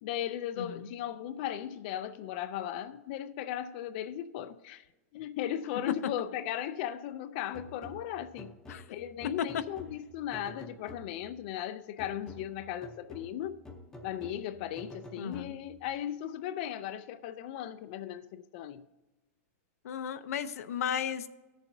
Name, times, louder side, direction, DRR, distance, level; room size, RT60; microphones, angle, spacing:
voice 1, 0.0-4.8 5.1-8.5 8.9-13.6 14.0-18.8, left 11 dB, 35° left, 0.4 m, -37 dB
voice 2, 0.6-0.9 8.7-8.8 15.2-15.5 19.8-21.3, left 8 dB, 85° left, 0.7 m, -35 dB
sound 1, 7.5-11.4 12.0-15.9, left 1 dB, 5° left, 0.7 m, -50 dB
18.0 x 7.1 x 2.6 m
supercardioid pair, 170°, 8 cm